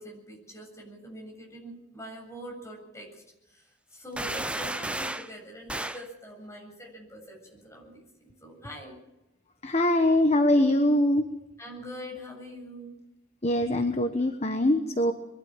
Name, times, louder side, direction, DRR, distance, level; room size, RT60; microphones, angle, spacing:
voice 1, 0.0-9.0 11.6-12.9, equal, 15° left, 0 dB, 7.6 m, -44 dB
sound 1, 4.2-5.3 5.7-6.1, right 1 dB, 5° right, 0.6 m, -33 dB
voice 2, 9.6-11.3 13.4-15.1, left 1 dB, 35° left, 6 dB, 1.3 m, -23 dB
23.0 x 13.0 x 9.0 m, 0.97 s
head